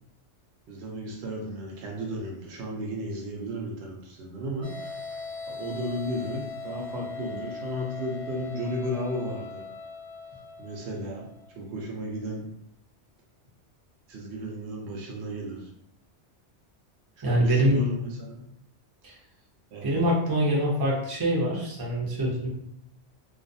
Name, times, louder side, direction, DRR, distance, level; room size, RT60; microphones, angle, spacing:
voice 1, 0.7-5.0 5.5-9.6 10.6-11.3 11.6-12.5 14.1-15.7 17.2-18.4 19.7-20.2, equal, 75° right, -1 dB, 0.8 m, -34 dB
sound 1, 4.6-11.5, left 4 dB, 55° left, 0.4 m, -40 dB
voice 2, 17.2-17.8 19.0-19.1 19.8-22.5, right 1 dB, 30° right, -4 dB, 0.4 m, -24 dB
2.3 x 2.2 x 2.5 m, 0.77 s
omnidirectional pair, 1.2 m